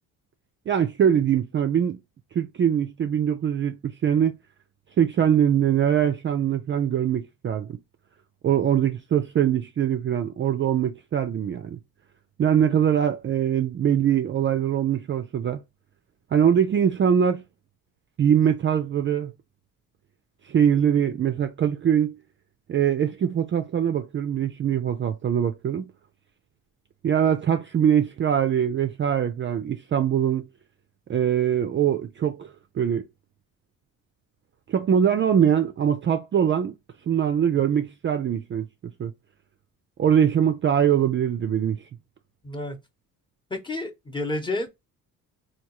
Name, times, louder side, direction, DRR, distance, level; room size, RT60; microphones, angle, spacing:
voice 1, 0.7-2.0 2.4-4.3 5.0-7.8 8.4-11.8 12.4-15.6 16.3-17.4 18.2-19.3 20.5-22.1 22.7-25.9 27.0-30.4 31.1-32.5 32.8-33.0 34.7-36.7 37.1-38.7 39.0-39.1 40.0-41.8, right 9 dB, 35° right, 0.4 m, -22 dB
voice 2, 42.4-42.8 43.5-44.7, left 2 dB, 15° left, 0.8 m, -30 dB
3.5 x 2.3 x 2.9 m
cardioid pair, 110°, 35 cm